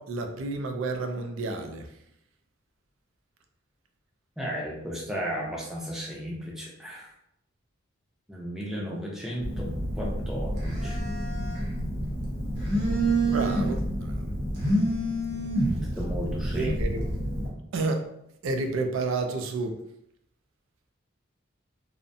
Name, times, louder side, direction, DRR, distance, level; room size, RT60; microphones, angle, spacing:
voice 1, 0.0-1.8 13.2-14.2 16.5-17.0 17.7-18.0 18.4-19.7, right 3 dB, 75° right, 5 dB, 0.4 m, -30 dB
voice 2, 4.4-7.1 8.3-11.0 16.0-16.8, equal, ahead, -4 dB, 0.4 m, -34 dB
Telephone, 9.4-17.5, right 1 dB, 50° right, 0.7 m, -28 dB
2.6 x 2.1 x 2.5 m, 0.77 s
head